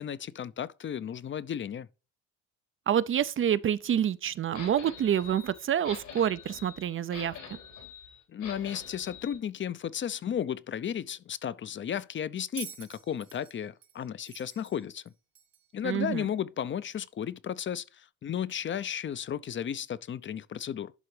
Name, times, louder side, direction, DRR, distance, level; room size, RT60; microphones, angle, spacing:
voice 1, 0.0-1.9 8.3-15.0 15.7-20.9, left 9 dB, 40° left, 0.5 m, -34 dB
voice 2, 2.9-7.4 15.8-16.2, right 9 dB, 45° right, 0.4 m, -27 dB
sound 1, 4.5-9.4, left 6 dB, 85° left, 4.1 m, -46 dB
Bell, 12.6-15.8 16.9-17.0, right 10 dB, 70° right, 1.8 m, -47 dB
11.0 x 3.8 x 3.2 m
cardioid pair, 90°, 30 cm